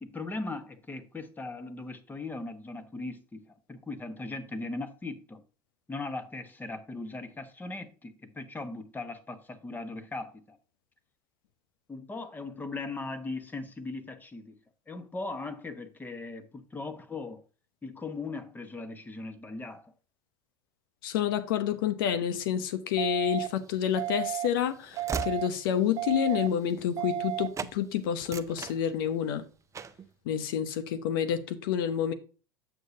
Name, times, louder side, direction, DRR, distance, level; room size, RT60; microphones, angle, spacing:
voice 1, 0.0-5.4 5.9-10.6 11.9-14.6 14.9-17.4 17.8-19.9, left 3 dB, 15° left, 1.1 m, -39 dB
voice 2, 21.0-29.5 30.2-32.1, left 9 dB, 80° left, 0.7 m, -29 dB
sound 1, 23.0-23.5 24.0-24.5 25.0-25.5 26.0-26.5 27.0-27.5, right 14 dB, 55° right, 1.2 m, -32 dB
Train / Slam, 23.7-27.3 27.5-27.8 28.1-29.3 29.7-30.1, right 5 dB, 25° right, 0.5 m, -40 dB
7.8 x 6.8 x 2.7 m
hypercardioid pair, 90°, 11 cm